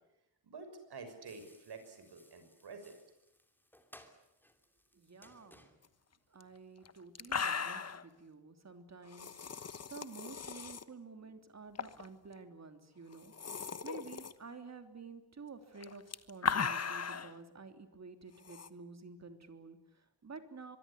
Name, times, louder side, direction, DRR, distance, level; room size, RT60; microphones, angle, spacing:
voice 1, 0.4-2.9, right 4 dB, 65° right, 8 dB, 6.5 m, -49 dB
sound 1, 1.2-7.0, left 1 dB, 5° left, 2.9 m, -63 dB
voice 2, 4.9-5.7 6.3-20.8, right 4 dB, 40° right, 7 dB, 3.3 m, -51 dB
sound 2, 6.4-6.5 6.9-7.0 7.2-8.0 9.1-10.8 11.8-12.1 12.4-12.5 13.1-14.3 15.8-17.3 18.5-18.7, left 6 dB, 35° left, 1.2 m, -37 dB
25.0 x 22.5 x 9.9 m, 0.89 s
wide cardioid pair, 140°, 43 cm